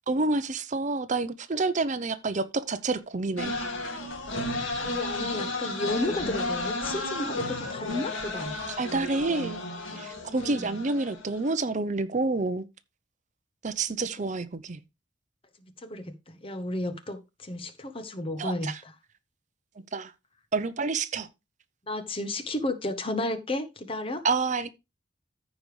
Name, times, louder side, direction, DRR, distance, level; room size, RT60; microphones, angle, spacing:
voice 1, 0.1-3.7 8.8-9.6 9.9-12.7 13.6-14.8 18.4-18.8 19.9-20.1 20.5-21.3 24.2-24.7, right 3 dB, 40° right, 0.6 m, -28 dB
sound 1, 3.4-11.6, left 2 dB, 85° left, 2.2 m, -33 dB
voice 2, 4.8-8.6 10.4-10.9 14.0-14.1 15.6-18.9 21.9-24.2, left 1 dB, 30° left, 1.0 m, -33 dB
14.5 x 5.1 x 3.2 m
head